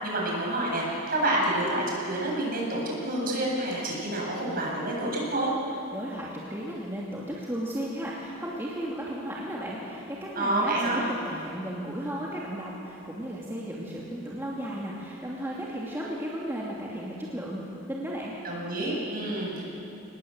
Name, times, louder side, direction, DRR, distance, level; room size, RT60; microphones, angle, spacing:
voice 1, 0.0-5.5 10.3-11.0 18.4-19.6, right 1 dB, 45° right, -3 dB, 7.7 m, -28 dB
voice 2, 5.9-18.3, equal, 10° right, -5 dB, 2.5 m, -35 dB
27.0 x 20.0 x 7.9 m, 2.9 s
head